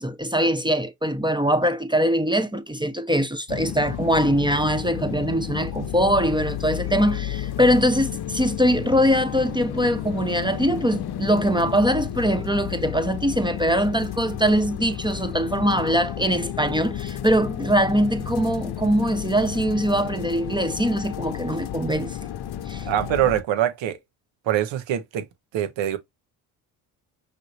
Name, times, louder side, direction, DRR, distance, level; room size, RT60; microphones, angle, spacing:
voice 1, 0.0-22.2 22.7-22.9, equal, 10° right, 0.9 m, -22 dB
sound 1, 3.5-23.4, left 11 dB, 50° left, 0.8 m, -32 dB
voice 2, 22.9-24.0 24.5-25.3 25.5-26.0, right 11 dB, 65° right, 1.2 m, -23 dB
5.8 x 3.4 x 2.7 m
hypercardioid pair, 55°, 48 cm